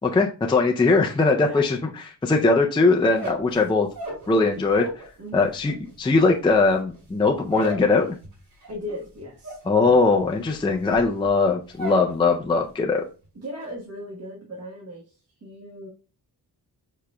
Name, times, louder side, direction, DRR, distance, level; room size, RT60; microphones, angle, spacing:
voice 1, 0.0-3.9 4.3-5.0 5.3-8.1 9.7-13.0, left 3 dB, 15° left, 1 dB, 0.4 m, -20 dB
sound 1, 3.0-5.1 5.4-12.1 12.4-12.9 13.2-13.7, right 1 dB, 60° right, 2.5 m, -37 dB
voice 2, 8.7-10.2 13.3-15.9, equal, 40° right, -5 dB, 1.2 m, -38 dB
5.0 x 4.7 x 2.2 m, 0.35 s
wide cardioid pair, 145°, 40 cm